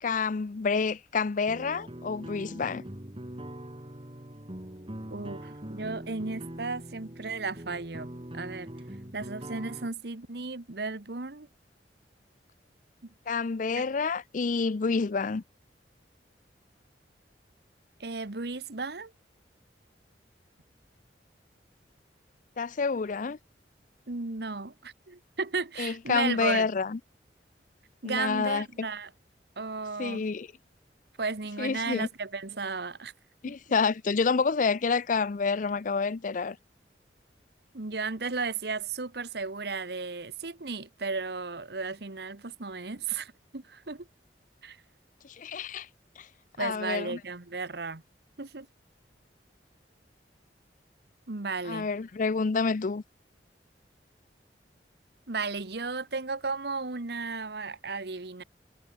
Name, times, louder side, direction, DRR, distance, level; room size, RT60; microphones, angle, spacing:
voice 1, 0.0-2.8 13.3-15.4 22.6-23.4 25.8-27.0 28.0-28.9 30.0-30.5 31.6-32.1 33.4-36.6 45.2-45.9 46.2-46.3 46.6-47.2 51.7-53.0, left 4 dB, 45° left, 0.5 m, -28 dB
sound 1, 1.5-9.9, right 1 dB, 30° right, 2.6 m, -42 dB
voice 2, 5.1-8.1 8.3-8.7 9.1-11.5 13.8-13.9 18.0-19.1 24.1-26.7 28.0-29.1 29.6-30.3 31.2-33.1 33.5-33.6 37.7-44.1 44.6-44.8 46.6-48.0 48.4-48.7 51.3-51.9 55.3-58.4, right 4 dB, 65° right, 1.3 m, -34 dB
head